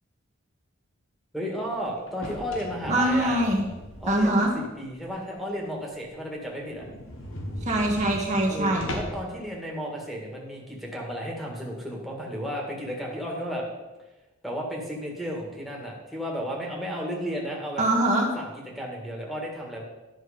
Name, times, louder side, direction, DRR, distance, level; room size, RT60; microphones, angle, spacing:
voice 1, 1.3-3.4 4.0-6.8 8.5-13.7 14.4-17.9 18.3-18.5 18.8-19.8, equal, ahead, -3 dB, 1.8 m, -33 dB
sound 1, 2.1-4.6 5.0-5.1 5.6-5.7 5.9-6.0 6.3-6.4 6.7-9.3, equal, 75° left, 1.8 m, -38 dB
voice 2, 2.9-3.6 4.1-4.5 7.6-8.9 17.8-18.3, right 1 dB, 35° right, -1 dB, 1.3 m, -23 dB
10.5 x 6.4 x 5.0 m, 1.1 s
head